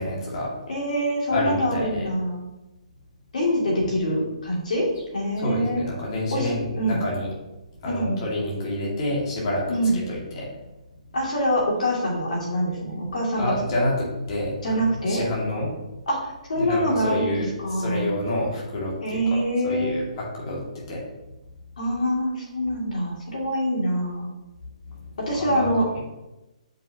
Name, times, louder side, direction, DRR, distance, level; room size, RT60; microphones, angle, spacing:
voice 1, 0.0-0.5 1.3-2.1 5.4-7.3 7.8-9.7 10.1-10.5 13.4-15.7 16.5-21.0 24.9-25.1 25.4-25.7, left 1 dB, 40° left, -4 dB, 2.1 m, -28 dB
voice 2, 0.7-2.4 3.3-5.8 6.3-6.5 6.8-7.0 7.8-8.1 9.7-10.0 11.1-13.5 14.6-15.2 16.1-18.1 19.0-20.1 21.8-24.3 25.2-25.8, equal, 75° left, -3 dB, 2.2 m, -25 dB
7.5 x 5.4 x 2.8 m, 1.0 s
hypercardioid pair, 160°, 4 cm